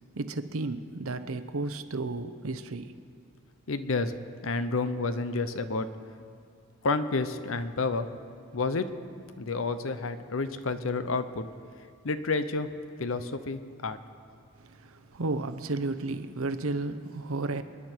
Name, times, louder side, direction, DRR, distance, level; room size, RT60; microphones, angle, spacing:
voice 1, 0.1-3.0 14.6-17.6, right 2 dB, 75° right, 0.8 m, -33 dB
voice 2, 3.7-4.1 4.4-5.9 6.8-8.1 8.5-8.8 9.4-11.5 12.0-12.7 13.0-14.0, left 3 dB, 70° left, 0.7 m, -30 dB
28.0 x 9.8 x 4.5 m
head